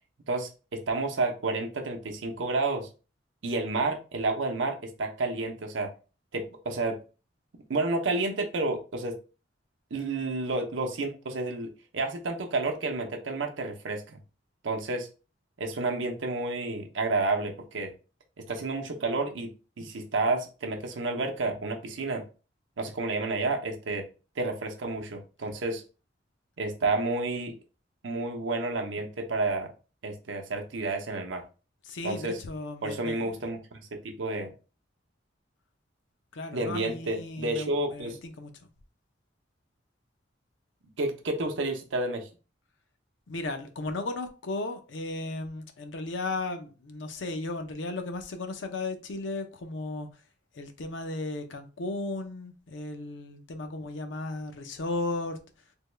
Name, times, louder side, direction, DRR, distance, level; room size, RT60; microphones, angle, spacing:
voice 1, 0.3-2.9 3.4-5.9 6.3-7.0 7.7-9.2 9.9-14.2 14.6-15.1 15.6-17.9 18.5-22.2 22.8-24.1 24.4-25.8 26.6-27.6 28.0-29.7 30.0-31.4 32.0-32.4 32.8-34.5 36.5-38.2 41.0-42.3, right 3 dB, 80° right, 0.7 m, -30 dB
voice 2, 31.8-33.3 36.3-38.5 43.3-50.1 50.5-55.4, left 2 dB, 70° left, 0.6 m, -35 dB
3.4 x 2.2 x 3.1 m
head